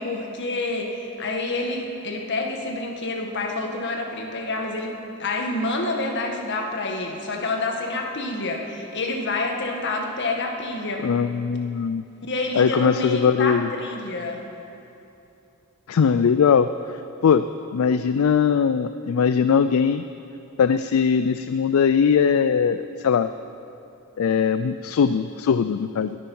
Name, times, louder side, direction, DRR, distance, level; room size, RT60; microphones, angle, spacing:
voice 1, 0.0-11.1 12.3-14.4, left 2 dB, 50° left, 2 dB, 1.6 m, -28 dB
voice 2, 11.0-12.0 12.5-13.7 15.9-16.7 17.2-17.4 17.7-20.0 20.6-23.3 24.2-26.2, left 6 dB, 70° left, 11 dB, 0.4 m, -20 dB
21.0 x 8.7 x 5.5 m, 2.9 s
head